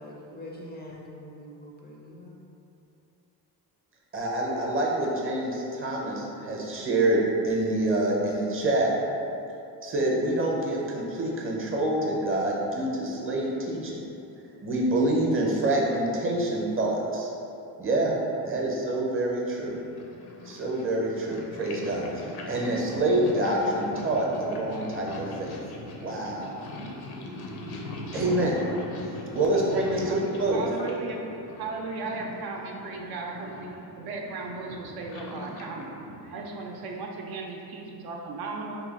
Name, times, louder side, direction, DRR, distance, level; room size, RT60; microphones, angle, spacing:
voice 1, 0.0-2.4, left 1 dB, 25° left, -3 dB, 0.4 m, -43 dB
voice 2, 4.1-8.9 9.8-14.0 14.6-17.3 17.8-18.1 18.5-19.7 20.4-25.5 26.0-26.7 28.1-28.6 29.3-30.6, right 1 dB, 35° right, -2 dB, 0.7 m, -26 dB
Purr, 19.5-37.1, left 1 dB, 75° left, 0.6 m, -41 dB
voice 3, 30.5-31.2 31.6-35.9 36.2-38.8, right 3 dB, 70° right, 0 dB, 0.5 m, -36 dB
2.9 x 2.3 x 4.0 m, 2.8 s
cardioid pair, 100°, 39 cm